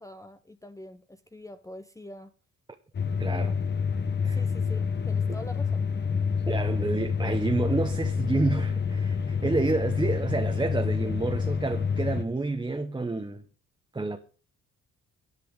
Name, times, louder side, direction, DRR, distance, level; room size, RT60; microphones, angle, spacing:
voice 1, 0.0-2.3 3.3-3.6 4.3-5.8, left 1 dB, 10° left, 0.8 m, -45 dB
sound 1, 2.9-12.2, left 6 dB, 35° left, 1.0 m, -28 dB
voice 2, 3.2-3.5 4.2-4.4 6.5-13.4 13.9-14.2, right 3 dB, 15° right, 1.1 m, -29 dB
10.5 x 5.8 x 7.9 m
cardioid pair, 90°, 30 cm